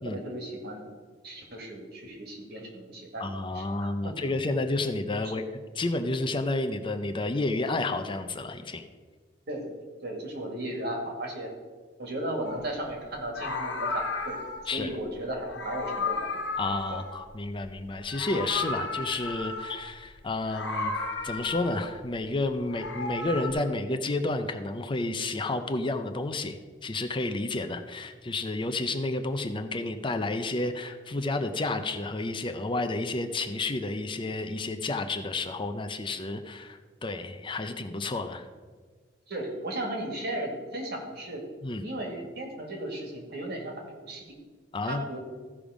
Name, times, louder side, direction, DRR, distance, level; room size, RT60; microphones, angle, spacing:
voice 1, 0.0-0.9 1.2-3.3 3.5-4.1 9.5-9.7 10.0-11.5 12.0-14.4 14.7-16.4 16.9-17.0 39.3-41.4 41.8-44.4 44.8-45.2, right 1 dB, 60° right, 2 dB, 2.1 m, -35 dB
voice 2, 3.2-5.4 5.7-8.9 14.7-14.9 16.6-20.9 21.2-38.5 41.6-41.8 44.7-45.0, left 2 dB, 30° left, 8 dB, 0.6 m, -31 dB
Meow, 12.5-12.7 13.2-14.7 15.4-17.7 18.0-19.9 20.4-22.0 22.5-23.5, left 3 dB, 80° left, 1.4 m, -34 dB
15.0 x 5.3 x 5.0 m, 1.5 s
head